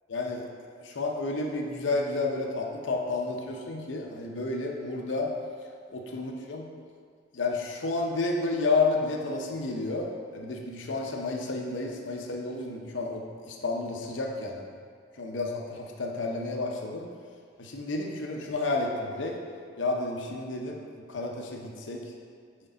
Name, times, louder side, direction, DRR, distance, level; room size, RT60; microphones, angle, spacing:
voice 1, 0.1-0.5 0.8-5.3 5.9-6.7 7.3-14.7 15.2-17.1 17.6-19.3 19.8-22.0, left 3 dB, 90° left, 0 dB, 0.7 m, -31 dB
6.4 x 5.1 x 3.9 m, 2.1 s
head